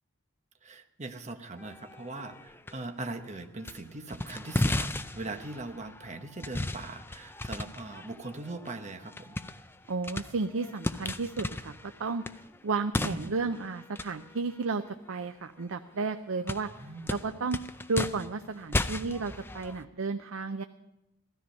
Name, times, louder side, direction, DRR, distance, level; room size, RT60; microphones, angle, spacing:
voice 1, 0.6-9.4 13.0-13.3 16.7-17.2, right 2 dB, 35° right, 6 dB, 1.0 m, -40 dB
sound 1, 1.6-2.8 3.2-3.8 4.1-15.6 16.0-16.1 16.4-19.8, left 2 dB, 10° left, 0.4 m, -36 dB
voice 2, 9.9-12.2 12.6-16.7 17.1-17.6 17.9-20.6, right 4 dB, 85° right, 8 dB, 0.6 m, -33 dB
16.5 x 13.0 x 5.4 m, 0.90 s
head